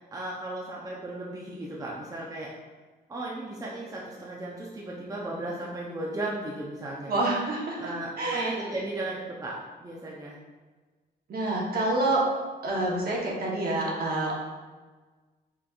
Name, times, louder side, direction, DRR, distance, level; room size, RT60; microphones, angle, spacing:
voice 1, 0.1-2.5 3.1-7.1 7.8-10.4, right 2 dB, 20° right, -4 dB, 0.6 m, -35 dB
voice 2, 7.1-8.6 11.3-12.2 12.6-14.4, right 2 dB, 55° right, -3 dB, 1.2 m, -27 dB
5.8 x 3.3 x 2.5 m, 1.3 s
cardioid pair, 140°, 18 cm